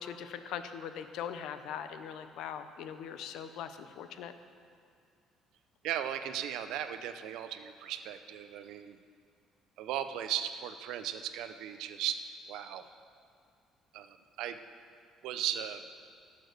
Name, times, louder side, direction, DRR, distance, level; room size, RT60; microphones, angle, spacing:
voice 1, 0.0-4.3, left 8 dB, 70° left, 10 dB, 0.7 m, -41 dB
voice 2, 5.8-9.0 9.8-12.8 13.9-14.6 15.2-15.8, right 10 dB, 80° right, 9 dB, 0.6 m, -37 dB
12.5 x 7.0 x 6.6 m, 2.2 s
cardioid pair, 145°, 0 cm